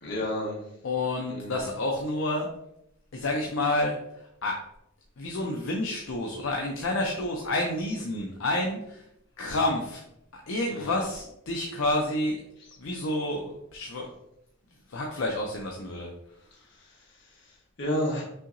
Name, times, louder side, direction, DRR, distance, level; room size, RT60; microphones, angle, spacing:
voice 1, 0.0-0.6 1.3-1.7 10.7-11.0 16.5-18.2, equal, 55° left, -3 dB, 1.3 m, -33 dB
voice 2, 0.8-2.5 3.1-4.0 4.4-4.6 5.2-9.0 9.4-10.0 10.5-12.4 12.8-14.1 14.9-16.1, left 2 dB, 70° left, 0 dB, 0.5 m, -29 dB
5.6 x 2.8 x 2.6 m, 0.80 s
head